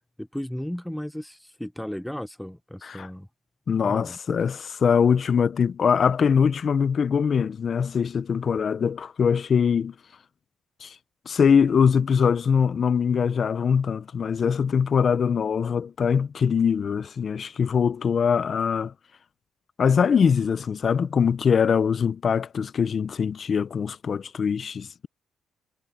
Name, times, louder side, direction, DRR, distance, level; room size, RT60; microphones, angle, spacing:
voice 1, 0.2-3.3 3.8-4.2, equal, 5° left, 0.7 m, -34 dB
voice 2, 3.7-9.9 10.8-10.9 11.3-18.9 19.8-25.1, left 6 dB, 50° left, 0.7 m, -22 dB
cardioid pair, 90°, 0 cm